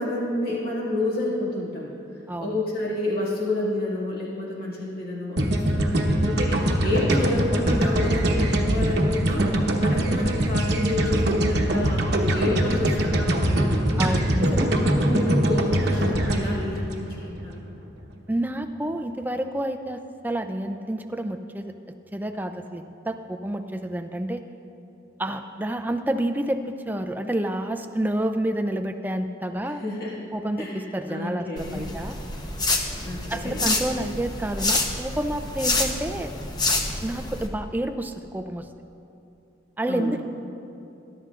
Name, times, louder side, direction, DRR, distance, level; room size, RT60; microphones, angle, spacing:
voice 1, 0.0-1.9 2.4-9.5 9.8-12.1 12.3-14.0 14.4-17.6 29.6-30.2 30.6-30.8 31.1-31.9 33.0-33.6 39.9-40.2, left 1 dB, 50° left, -6 dB, 2.1 m, -29 dB
voice 2, 2.3-2.6 14.0-14.7 18.3-21.7 22.1-24.4 25.2-29.8 30.3-32.1 33.3-36.3 37.0-38.6 39.8-40.2, right 1 dB, 10° right, 6 dB, 0.4 m, -29 dB
sound 1, 5.4-17.6, right 1 dB, 60° right, 1.1 m, -23 dB
sound 2, 31.6-37.5, left 2 dB, 20° left, 0.8 m, -28 dB
22.0 x 11.5 x 2.5 m, 2.8 s
head